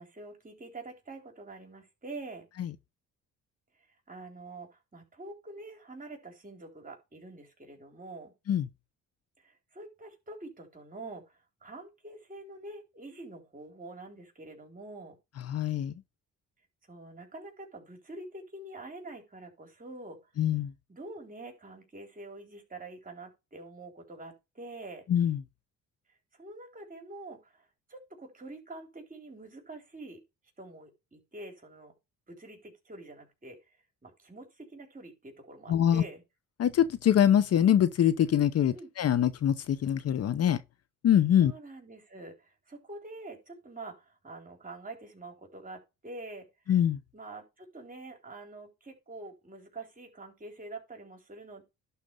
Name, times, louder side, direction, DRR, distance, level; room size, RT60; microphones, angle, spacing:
voice 1, 0.0-2.5 4.1-8.3 9.4-15.2 16.9-20.2 20.9-25.0 26.4-30.2 30.6-31.9 32.3-33.6 34.0-36.2 38.7-38.9 41.4-46.8 47.1-51.6, right 2 dB, 25° right, 3.7 m, -46 dB
voice 2, 15.5-15.9 20.4-20.7 25.1-25.4 35.7-36.0 36.6-40.6 41.0-41.5 46.7-47.0, left 10 dB, 55° left, 0.8 m, -24 dB
11.5 x 4.4 x 5.3 m
cardioid pair, 90°, 30 cm